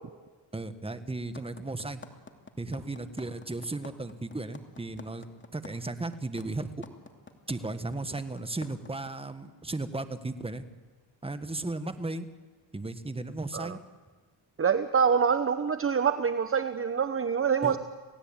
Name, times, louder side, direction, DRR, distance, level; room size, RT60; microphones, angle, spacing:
voice 1, 0.5-2.0 2.6-5.3 5.5-6.7 7.5-10.6 11.2-12.3 12.7-13.8 17.6-17.8, right 2 dB, 15° right, 10 dB, 1.6 m, -35 dB
sound 1, 1.3-9.1, left 4 dB, 25° left, 2.7 m, -46 dB
voice 2, 14.6-17.8, right 6 dB, 30° right, 10 dB, 1.0 m, -25 dB
28.5 x 17.0 x 8.9 m, 1.4 s
cardioid pair, 90°, 43 cm